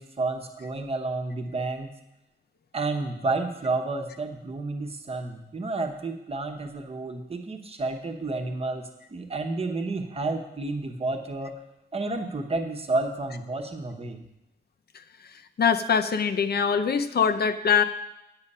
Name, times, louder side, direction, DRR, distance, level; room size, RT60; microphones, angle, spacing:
voice 1, 0.0-1.9 2.7-11.5 11.9-14.2, right 3 dB, 35° right, 4 dB, 1.0 m, -30 dB
voice 2, 15.6-17.8, left 6 dB, 65° left, 9 dB, 0.6 m, -23 dB
9.0 x 8.6 x 5.5 m, 0.87 s
wide cardioid pair, 175°, 18 cm